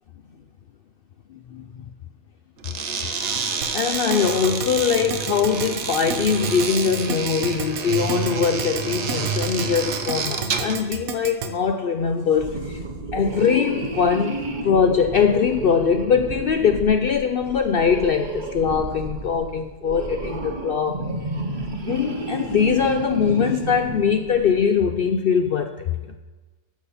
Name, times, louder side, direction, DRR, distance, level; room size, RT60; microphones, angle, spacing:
voice 1, 1.3-1.7 3.7-12.8 13.1-21.1 21.8-26.0, left 6 dB, 65° left, 0.5 m, -22 dB
sound 1, 2.6-10.9, right 5 dB, 60° right, 1.1 m, -28 dB
Keyboard (musical), 3.6-11.5, right 7 dB, 85° right, 1.2 m, -31 dB
sound 2, 12.3-24.8, right 2 dB, 35° right, 1.1 m, -31 dB
13.0 x 7.3 x 4.2 m
omnidirectional pair, 1.4 m